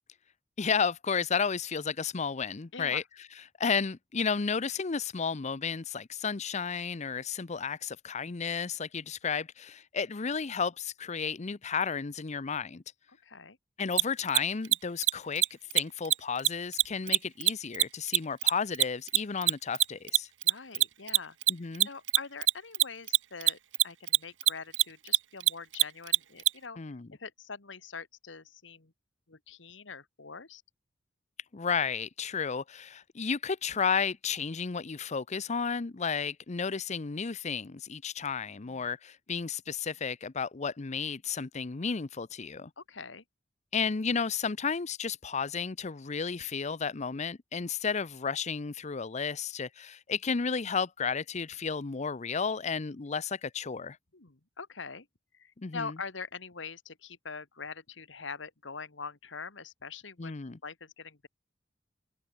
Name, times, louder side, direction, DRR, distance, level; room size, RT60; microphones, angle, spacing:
voice 1, 0.6-3.0 3.6-12.8 13.8-15.4 15.7-20.3 21.5-21.9 26.8-27.1 31.5-42.7 43.7-54.0 55.6-56.0 60.2-60.6, left 5 dB, 40° left, 0.6 m, -32 dB
voice 2, 2.7-3.0 13.2-13.6 20.4-21.4 21.8-23.6 23.8-26.8 27.2-28.9 29.3-30.6 42.8-43.2 54.1-55.1 55.4-60.3 60.6-61.3, left 5 dB, 85° left, 1.9 m, -43 dB
Mechanisms, 13.9-14.0 14.3-14.4 14.6-14.8 15.0-15.1 15.4-15.5 15.7-16.1 16.4-19.2 19.4-26.5, right 16 dB, 75° right, 0.8 m, -22 dB
open air
head